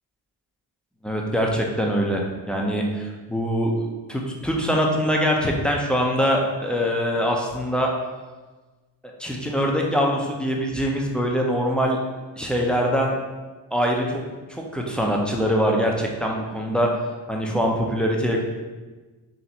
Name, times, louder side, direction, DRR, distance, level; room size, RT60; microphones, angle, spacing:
voice 1, 1.0-7.9 9.2-12.0 12.4-13.1 13.7-14.2 14.5-16.9 17.3-18.4, equal, ahead, 0 dB, 0.8 m, -23 dB
4.2 x 3.0 x 2.9 m, 1.3 s
supercardioid pair, 40°, 49 cm